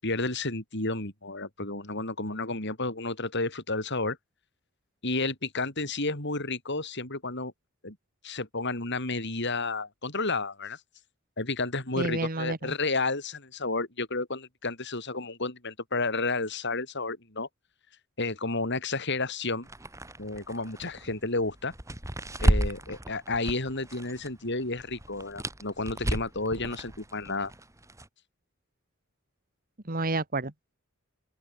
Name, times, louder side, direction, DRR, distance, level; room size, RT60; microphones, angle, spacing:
voice 1, 0.0-4.2 5.0-7.5 7.8-8.0 8.2-10.8 11.4-17.5 18.2-19.7 20.2-21.7 22.4-27.5, left 3 dB, 60° left, 7.9 m, -31 dB
voice 2, 12.0-12.7 29.9-30.7, right 2 dB, 45° right, 2.3 m, -30 dB
sound 1, 19.6-24.3 24.6-28.1, equal, 15° right, 5.0 m, -32 dB
open air
head